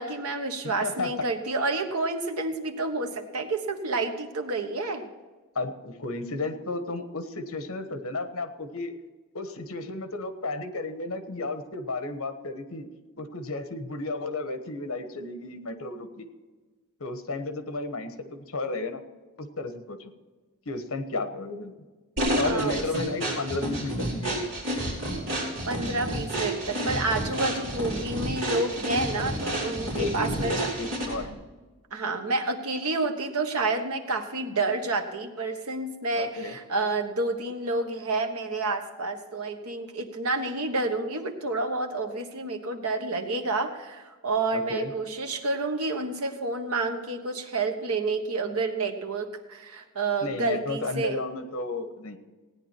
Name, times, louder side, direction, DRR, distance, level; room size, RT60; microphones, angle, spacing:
voice 1, 0.0-5.0 22.4-22.8 25.7-30.7 31.9-51.1, right 3 dB, 90° right, 5 dB, 1.4 m, -29 dB
voice 2, 0.6-1.1 5.5-8.9 9.3-12.9 13.2-16.3 17.0-19.0 19.4-20.1 20.6-21.8 22.3-24.4 29.9-31.4 36.2-36.6 44.5-44.9 50.2-52.2, left 2 dB, 75° left, 9 dB, 1.2 m, -33 dB
sound 1, 22.2-31.3, right 1 dB, 55° right, 4.5 m, -30 dB
16.5 x 9.9 x 4.5 m, 1.3 s
head